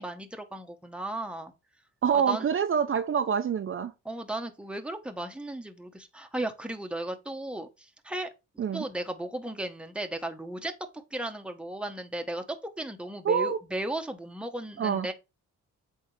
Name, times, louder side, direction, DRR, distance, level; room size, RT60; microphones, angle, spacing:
voice 1, 0.0-1.5 2.1-2.5 4.0-8.3 8.7-15.1, right 1 dB, 5° right, 1.1 m, -35 dB
voice 2, 2.0-3.9 8.6-8.8 13.2-13.6 14.8-15.1, right 7 dB, 45° right, 0.7 m, -26 dB
8.4 x 3.6 x 3.3 m
cardioid pair, 90°, 30 cm